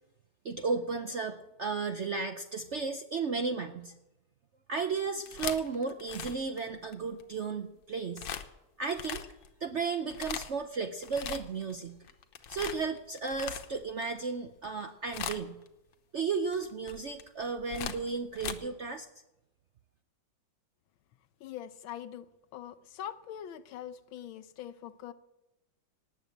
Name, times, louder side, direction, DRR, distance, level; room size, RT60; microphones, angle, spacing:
voice 1, 0.4-3.9 4.7-8.3 8.8-9.2 9.6-12.0 12.5-15.6 16.1-19.1, right 4 dB, 60° right, 7 dB, 0.7 m, -34 dB
sound 1, 5.1-7.2 8.2-8.5 8.9-9.5 10.0-10.6 11.0-11.7 12.0-14.0 14.6-14.8 15.1-15.7 16.5-18.5, left 8 dB, 70° left, 1.6 m, -39 dB
voice 2, 21.4-25.1, left 10 dB, 90° left, 12 dB, 1.6 m, -43 dB
18.5 x 7.9 x 7.9 m, 0.95 s
omnidirectional pair, 2.1 m